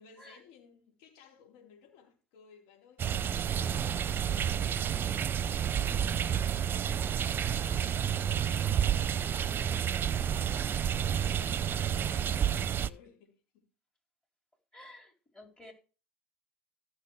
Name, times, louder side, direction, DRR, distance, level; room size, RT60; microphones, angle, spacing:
voice 1, 0.0-13.7 15.6-15.7, left 7 dB, 65° left, 4.3 m, -59 dB
sound 1, 3.0-12.9, right 9 dB, 35° right, 0.7 m, -30 dB
voice 2, 14.7-15.7, left 1 dB, 10° left, 4.6 m, -52 dB
15.5 x 6.5 x 4.8 m
hypercardioid pair, 80°, 6 cm